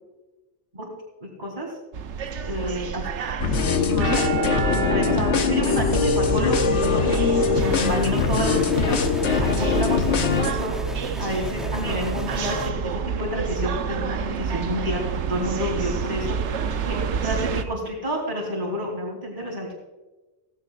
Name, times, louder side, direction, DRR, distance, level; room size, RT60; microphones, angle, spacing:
voice 1, 1.2-1.8 2.4-3.4 3.8-15.0 15.3-19.7, equal, 40° right, -6 dB, 3.0 m, -30 dB
sound 1, 1.9-17.6, right 7 dB, 80° right, 1.1 m, -29 dB
sound 2, 3.4-10.5, left 5 dB, 80° left, 1.3 m, -22 dB
sound 3, 7.6-12.7, equal, ahead, 0.5 m, -36 dB
16.0 x 15.5 x 2.4 m, 1.1 s
omnidirectional pair, 1.2 m